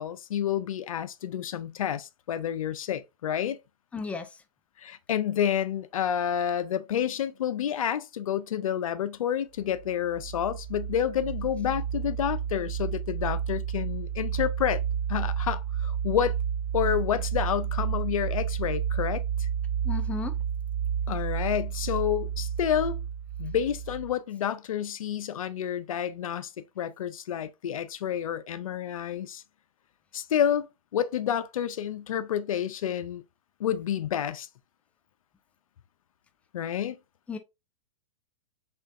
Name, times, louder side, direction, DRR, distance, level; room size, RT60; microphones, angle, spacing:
voice 1, 0.0-3.6 4.8-14.8 15.1-16.3 16.7-19.5 21.1-23.0 23.4-29.4 30.1-30.7 30.9-33.2 33.6-34.5 36.5-37.0, left 9 dB, 85° left, 0.5 m, -29 dB
voice 2, 3.9-4.4 19.8-20.3 37.3-37.4, left 5 dB, 10° left, 0.4 m, -34 dB
sound 1, 9.7-24.2, right 8 dB, 60° right, 0.5 m, -31 dB
4.3 x 3.1 x 2.5 m
hypercardioid pair, 125°, 17 cm